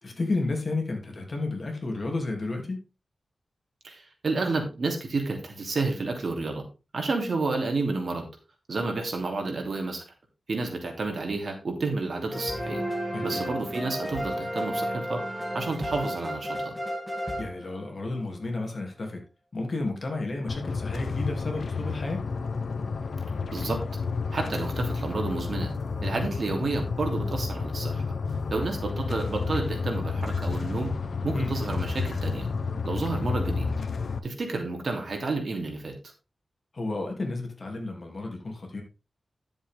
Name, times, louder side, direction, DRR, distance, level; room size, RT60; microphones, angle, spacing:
voice 1, 0.0-2.8 13.1-13.5 17.4-19.2 19.5-22.2 31.3-31.5 36.7-38.8, left 2 dB, 45° left, 2.9 m, -32 dB
voice 2, 3.8-6.6 6.9-8.3 8.7-10.0 10.5-12.8 13.2-15.3 15.5-16.7 23.5-23.8 24.3-25.7 26.0-28.0 28.5-30.9 31.2-32.5 32.8-33.7 34.2-36.0, right 3 dB, 60° right, 2.9 m, -30 dB
sound 1, 12.3-18.2, equal, 5° right, 2.3 m, -32 dB
sound 2, 20.5-34.2, left 4 dB, 80° left, 1.0 m, -30 dB
11.0 x 7.2 x 3.6 m
wide cardioid pair, 130°, 0 cm